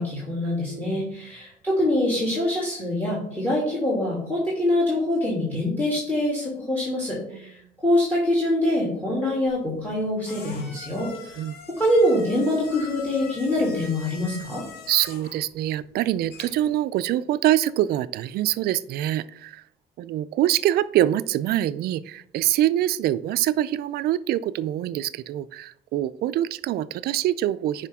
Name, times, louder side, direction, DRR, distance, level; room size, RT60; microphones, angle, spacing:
voice 1, 0.0-11.4 11.8-14.6, left 1 dB, 10° left, -5 dB, 2.8 m, -24 dB
voice 2, 0.7-1.0 7.3-7.5 11.4-11.6 14.9-19.6 20.0-27.9, right 13 dB, 70° right, 16 dB, 0.4 m, -25 dB
sound 1, 9.5-16.8, left 4 dB, 70° left, 1.6 m, -44 dB
9.8 x 5.0 x 3.6 m, 0.71 s
cardioid pair, 110°, 17 cm